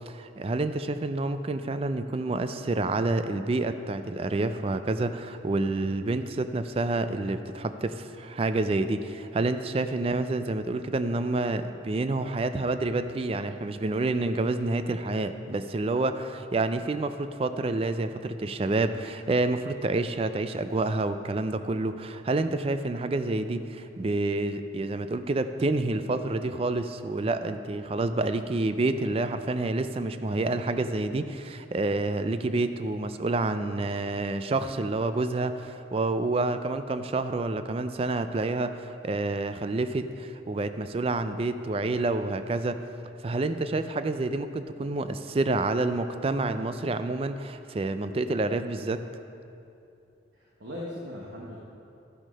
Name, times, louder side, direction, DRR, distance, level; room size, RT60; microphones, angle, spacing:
voice 1, 0.1-42.8 43.2-49.0, right 2 dB, 30° right, 10 dB, 0.3 m, -28 dB
voice 2, 50.3-51.6, left 1 dB, 75° right, -4 dB, 1.1 m, -39 dB
12.0 x 6.2 x 5.5 m, 2.7 s
head